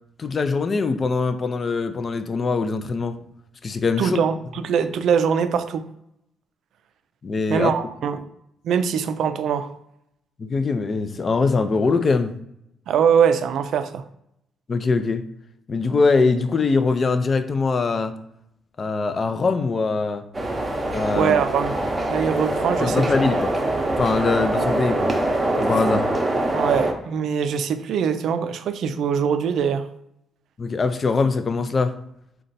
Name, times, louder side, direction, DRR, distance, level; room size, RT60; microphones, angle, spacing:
voice 1, 0.2-3.2 3.6-4.2 7.2-7.7 10.4-12.3 14.7-15.2 15.7-18.1 18.8-20.2 20.9-21.4 22.8-23.6 24.0-25.1 25.6-26.1 30.6-31.9, left 4 dB, 40° left, 10 dB, 0.4 m, -22 dB
voice 2, 4.0-5.9 7.5-8.2 8.6-9.7 12.9-14.0 21.2-21.7 22.1-23.1 26.5-29.9, right 7 dB, 70° right, 10 dB, 0.3 m, -22 dB
sound 1, 20.3-26.9, right 1 dB, 25° right, 0.7 m, -24 dB
3.9 x 2.2 x 3.9 m, 0.77 s
cardioid pair, 90°, 0 cm